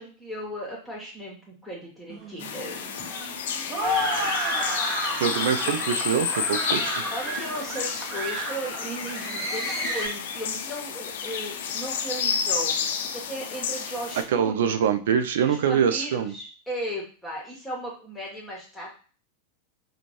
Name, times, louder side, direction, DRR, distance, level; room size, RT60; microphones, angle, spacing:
voice 1, 0.0-3.1 5.6-5.7 7.1-12.7 13.1-14.8 15.4-18.9, equal, ahead, -4 dB, 1.1 m, -36 dB
sound 1, 2.1-10.1, equal, 30° right, 1.0 m, -31 dB
sound 2, 2.4-14.2, left 7 dB, 55° left, 0.5 m, -31 dB
voice 2, 5.2-7.0 14.3-16.3, right 8 dB, 55° right, 9 dB, 0.4 m, -24 dB
4.9 x 2.3 x 3.0 m, 0.39 s
figure-of-eight pair, 90°, 0 cm